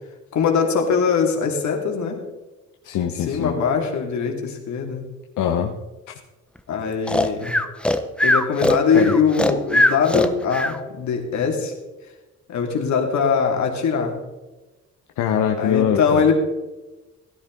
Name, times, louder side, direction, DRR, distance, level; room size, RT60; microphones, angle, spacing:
voice 1, 0.3-2.2 3.2-5.0 6.7-7.5 8.2-11.7 12.5-14.1 15.6-16.3, left 6 dB, 70° left, 2 dB, 2.6 m, -21 dB
voice 2, 2.8-3.5 5.4-5.7 8.9-9.1 15.2-16.3, left 9 dB, 85° left, 4 dB, 1.0 m, -22 dB
Breathing, 7.1-10.8, left 1 dB, 5° left, 0.9 m, -20 dB
16.0 x 10.5 x 3.9 m, 1.1 s
cardioid pair, 90°, 30 cm